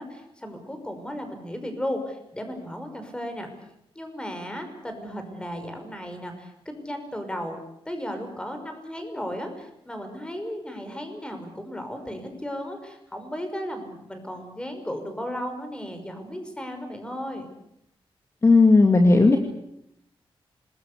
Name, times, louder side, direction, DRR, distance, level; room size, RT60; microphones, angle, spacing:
voice 1, 0.0-3.5 4.0-7.6 7.9-17.5, equal, 10° left, 6 dB, 5.8 m, -35 dB
voice 2, 18.4-19.4, left 3 dB, 30° left, 5 dB, 2.3 m, -15 dB
26.5 x 20.5 x 8.4 m, 0.79 s
wide cardioid pair, 125°, 10 cm